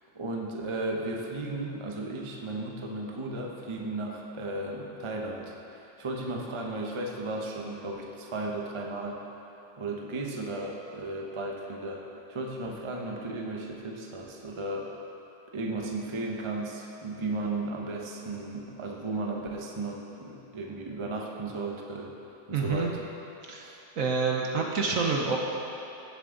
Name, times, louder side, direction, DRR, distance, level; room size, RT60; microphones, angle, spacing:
voice 1, 0.1-9.2 9.8-12.0 12.3-15.0 15.5-23.0 23.6-23.8, right 2 dB, 30° right, -1 dB, 0.5 m, -35 dB
voice 2, 22.5-22.9 23.5-23.7 24.0-25.4, right 4 dB, 55° right, 0 dB, 1.1 m, -27 dB
17.0 x 7.4 x 3.8 m, 2.9 s
omnidirectional pair, 2.1 m